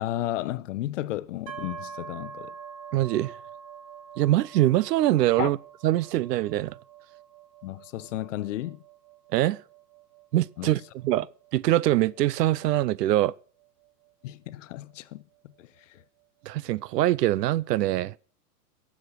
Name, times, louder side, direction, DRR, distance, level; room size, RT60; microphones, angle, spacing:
voice 1, 0.0-2.5 5.4-5.5 7.6-8.8 10.6-10.7 14.2-15.2 15.6-16.0, left 14 dB, 50° left, 0.8 m, -33 dB
sound 1, 1.5-15.2, right 7 dB, 25° right, 1.5 m, -46 dB
voice 2, 2.9-3.4 4.2-5.6 5.8-6.7 9.3-9.6 10.3-11.3 11.5-13.3 16.5-18.1, right 15 dB, 80° right, 0.7 m, -23 dB
16.5 x 7.4 x 6.3 m
supercardioid pair, 160°, 48 cm